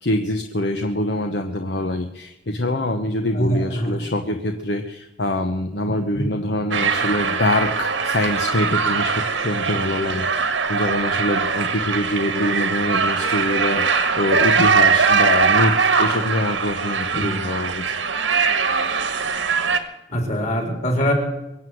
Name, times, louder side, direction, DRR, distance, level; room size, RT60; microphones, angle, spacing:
voice 1, 0.0-18.0, left 1 dB, 60° left, 5 dB, 1.1 m, -24 dB
voice 2, 3.3-4.0 6.1-6.3 17.1-17.2 20.1-21.1, equal, 40° left, 2 dB, 4.1 m, -23 dB
sound 1, 6.7-19.8, right 5 dB, 85° right, 1.6 m, -21 dB
23.5 x 7.9 x 7.9 m, 0.93 s
head